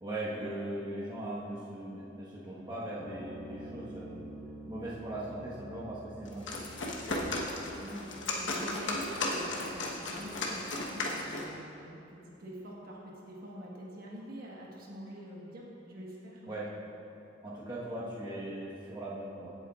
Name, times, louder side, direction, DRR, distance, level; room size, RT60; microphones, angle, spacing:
voice 1, 0.0-4.3 4.7-6.6 16.5-16.7 17.4-19.5, right 1 dB, 25° right, -8 dB, 1.3 m, -39 dB
sound 1, 3.0-9.6, right 1 dB, 45° left, 1.9 m, -49 dB
sound 2, 6.2-11.5, left 2 dB, 70° left, 1.2 m, -35 dB
voice 2, 7.7-16.8, equal, 50° right, -4 dB, 1.4 m, -45 dB
16.5 x 8.0 x 2.5 m, 2.7 s
head